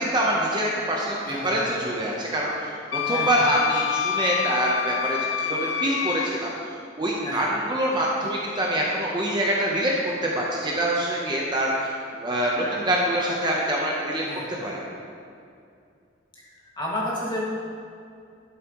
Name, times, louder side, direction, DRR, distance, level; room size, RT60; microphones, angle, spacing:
voice 1, 0.1-6.5 7.0-14.2 14.5-14.8, right 1 dB, 25° right, -3 dB, 0.8 m, -25 dB
voice 2, 1.2-1.6 3.0-3.4 7.2-7.5 12.6-12.8 14.2-14.5 16.3-17.5, left 1 dB, 25° left, -6 dB, 1.9 m, -32 dB
Wind instrument woodwind instrument, 2.9-6.3, left 9 dB, 65° left, 0.3 m, -27 dB
12.0 x 7.5 x 3.0 m, 2.4 s
head